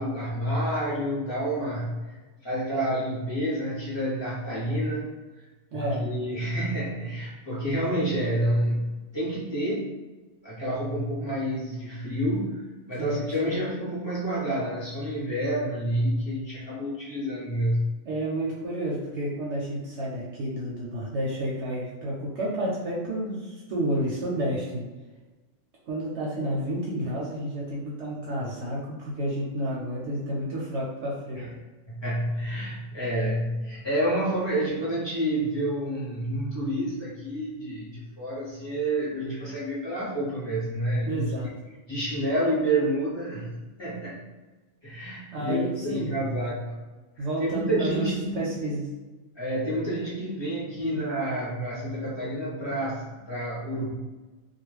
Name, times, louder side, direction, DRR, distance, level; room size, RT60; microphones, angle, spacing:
voice 1, 0.0-2.2 2.4-5.1 5.7-9.9 10.4-12.6 12.9-17.9 31.4-31.5 31.9-41.3 41.9-44.2 44.8-46.8 47.2-48.5 49.4-53.9, right 1 dB, 25° left, -7 dB, 0.7 m, -29 dB
voice 2, 5.7-6.1 13.0-13.6 18.0-24.8 25.9-31.5 41.0-41.5 45.3-46.2 47.2-48.9 50.8-51.0, right 1 dB, 65° right, -4 dB, 0.8 m, -30 dB
2.3 x 2.1 x 3.1 m, 1.2 s
omnidirectional pair, 1.4 m